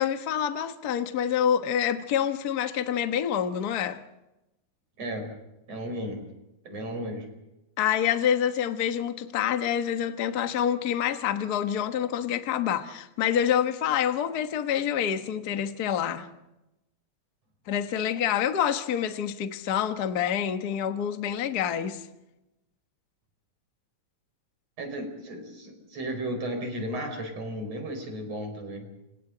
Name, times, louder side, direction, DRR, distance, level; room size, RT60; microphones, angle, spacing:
voice 1, 0.0-4.0 7.8-16.3 17.7-22.0, left 9 dB, 50° left, 1.2 m, -27 dB
voice 2, 5.0-5.4 5.7-6.2 6.7-7.3 24.8-28.9, right 1 dB, 55° right, 5.8 m, -34 dB
29.5 x 26.5 x 4.0 m
omnidirectional pair, 3.5 m